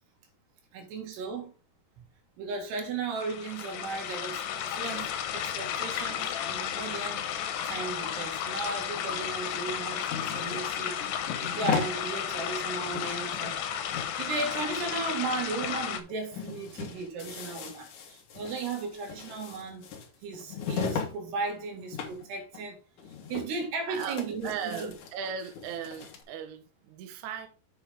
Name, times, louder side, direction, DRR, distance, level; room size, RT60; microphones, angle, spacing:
voice 1, 0.7-1.5 2.4-7.2 7.6-13.6 13.9-19.9 20.2-22.8 23.3-24.9, right 4 dB, 85° right, 4.0 m, -36 dB
sound 1, 3.2-16.0, left 9 dB, 85° left, 2.9 m, -33 dB
sound 2, 9.5-12.0 12.4-12.5 12.7-13.6 13.9-15.3 15.6-15.8 16.1-21.2 21.4-22.3 22.5-22.6 23.0-23.7 23.9-26.2, left 6 dB, 60° left, 2.4 m, -37 dB
voice 2, 23.9-24.2 24.4-27.5, right 7 dB, 65° right, 2.0 m, -37 dB
8.2 x 6.2 x 3.5 m
omnidirectional pair, 4.6 m